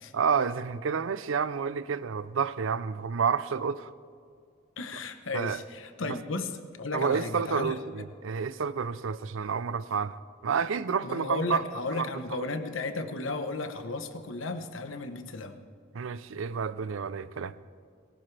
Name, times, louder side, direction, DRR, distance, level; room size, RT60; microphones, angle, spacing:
voice 1, 0.1-3.9 5.3-5.6 6.0-6.2 6.9-11.6 11.9-12.1 15.9-17.6, right 6 dB, 85° right, 0.5 m, -30 dB
voice 2, 4.8-7.8 11.0-15.6, left 3 dB, 85° left, 1.0 m, -34 dB
19.0 x 18.0 x 3.4 m
head